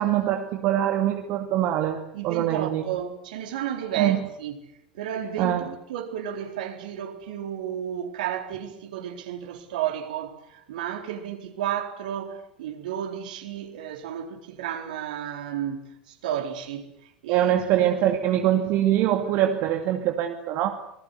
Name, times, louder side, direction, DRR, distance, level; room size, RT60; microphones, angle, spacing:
voice 1, 0.0-2.8 4.0-4.2 5.4-5.7 17.3-20.8, right 12 dB, 50° right, 2.4 m, -23 dB
voice 2, 2.1-4.7 4.9-17.5, right 9 dB, 65° right, 4.3 m, -32 dB
28.0 x 20.0 x 8.3 m
figure-of-eight pair, 80°, 5 cm